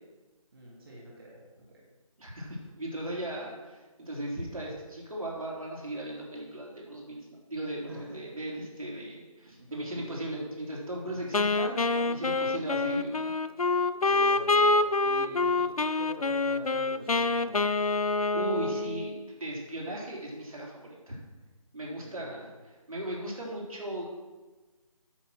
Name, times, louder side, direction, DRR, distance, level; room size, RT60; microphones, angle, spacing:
voice 1, 0.5-1.8 7.8-8.2 9.4-10.1 11.0-11.2 12.2-12.6 13.6-14.8 15.0-17.6 22.0-22.5, right 1 dB, 40° right, -5 dB, 2.2 m, -46 dB
voice 2, 2.2-13.3 18.1-21.2 21.7-22.5 22.9-24.1, right 1 dB, 75° right, -2 dB, 3.5 m, -37 dB
Wind instrument woodwind instrument, 11.3-19.3, left 3 dB, 80° left, 0.6 m, -26 dB
9.3 x 6.5 x 6.0 m, 1.2 s
figure-of-eight pair, 160°, 18 cm